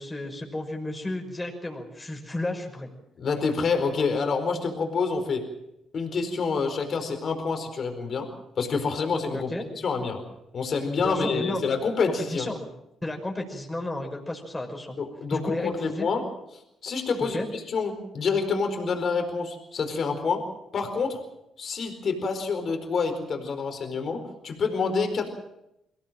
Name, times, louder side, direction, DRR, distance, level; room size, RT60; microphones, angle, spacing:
voice 1, 0.0-2.9 9.3-9.6 11.0-11.8 12.3-12.7 13.0-15.0 15.3-16.1 17.3-17.5, left 1 dB, 15° left, 1 dB, 5.9 m, -32 dB
voice 2, 3.2-5.5 5.9-9.5 9.8-10.2 10.5-12.5 15.0-16.3 16.8-20.5 20.7-21.2 21.6-25.3, left 4 dB, 55° left, 5 dB, 4.5 m, -27 dB
23.0 x 17.0 x 7.5 m, 0.84 s
supercardioid pair, 55°, 0 cm